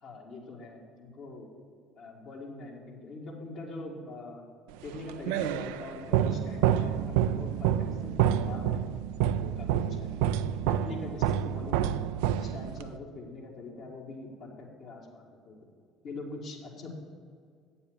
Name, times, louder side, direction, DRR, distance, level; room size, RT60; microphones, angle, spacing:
voice 1, 0.0-1.5 2.0-4.4 4.8-8.8 9.4-11.9 12.4-15.6 16.0-16.9, left 2 dB, 55° left, -2 dB, 2.1 m, -43 dB
sound 1, 4.8-13.0, right 10 dB, 65° right, 0.3 m, -28 dB
8.5 x 7.0 x 7.0 m, 2.2 s
figure-of-eight pair, 55°, 0 cm